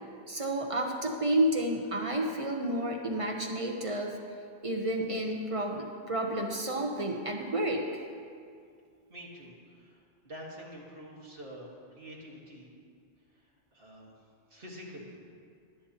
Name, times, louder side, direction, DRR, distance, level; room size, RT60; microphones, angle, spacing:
voice 1, 0.3-4.2 4.6-7.8, right 1 dB, 30° right, 1 dB, 0.9 m, -30 dB
voice 2, 9.1-11.7 12.0-12.7 13.7-14.1 14.5-15.2, equal, 50° right, -3 dB, 2.0 m, -47 dB
21.0 x 8.7 x 2.9 m, 2.3 s
omnidirectional pair, 1.2 m